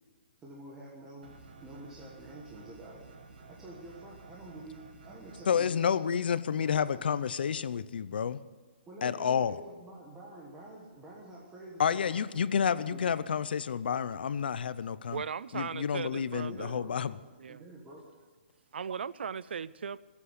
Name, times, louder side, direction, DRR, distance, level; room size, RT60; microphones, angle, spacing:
voice 1, 0.4-3.1 3.5-6.1 6.6-7.1 8.9-12.2 12.7-13.1 16.4-16.9 17.5-18.0, right 1 dB, 10° right, -4 dB, 1.4 m, -48 dB
sound 1, 1.2-5.6, right 3 dB, 60° right, 2.5 m, -52 dB
voice 2, 5.5-8.4 9.0-9.6 11.8-15.2 15.5-17.2, left 7 dB, 65° left, 16 dB, 0.7 m, -30 dB
voice 3, 15.1-16.8 17.4-17.6 18.7-20.0, right 6 dB, 85° right, 19 dB, 0.5 m, -37 dB
19.0 x 8.5 x 8.3 m, 1.4 s
hypercardioid pair, 175°, 6 cm